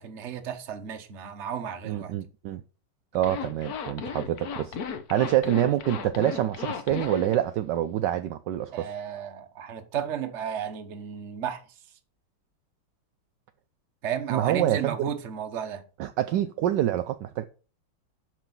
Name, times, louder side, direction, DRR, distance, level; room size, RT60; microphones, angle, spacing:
voice 1, 0.0-2.1 8.7-11.6 14.0-15.8, right 8 dB, 45° right, 1.0 m, -33 dB
voice 2, 1.8-2.6 3.1-8.9 14.3-15.0 16.0-17.4, right 12 dB, 80° right, 1.0 m, -26 dB
Zipper (clothing), 3.1-7.4, left 6 dB, 55° left, 1.2 m, -35 dB
6.0 x 5.9 x 6.9 m
omnidirectional pair, 2.4 m